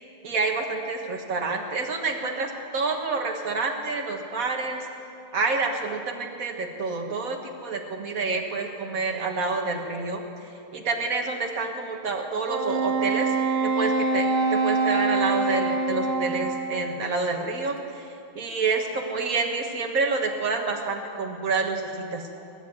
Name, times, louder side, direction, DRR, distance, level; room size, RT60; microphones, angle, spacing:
voice 1, 0.2-4.8 5.3-10.2 10.7-13.3 13.6-18.0 18.4-22.2, right 4 dB, 45° right, 2 dB, 1.7 m, -28 dB
Wind instrument woodwind instrument, 12.5-17.0, right 3 dB, 80° right, 2.0 m, -25 dB
20.5 x 7.1 x 9.4 m, 2.7 s
omnidirectional pair, 2.2 m